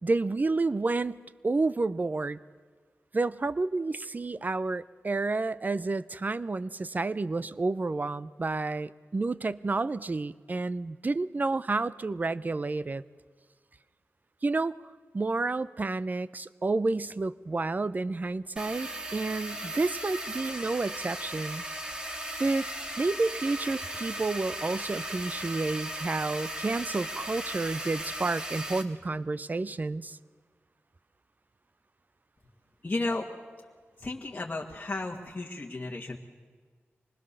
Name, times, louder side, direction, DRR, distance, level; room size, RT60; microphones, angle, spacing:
voice 1, 0.0-1.2 1.4-2.4 3.1-13.0 14.4-14.8 15.1-21.6 22.4-22.7 23.0-30.2, right 3 dB, 40° right, 17 dB, 0.6 m, -30 dB
sound 1, 18.6-28.8, right 1 dB, 20° right, 2.1 m, -37 dB
voice 2, 32.8-33.3 34.0-36.2, left 2 dB, 35° left, -2 dB, 1.8 m, -33 dB
25.5 x 20.0 x 6.8 m, 1.5 s
wide cardioid pair, 70°, 5 cm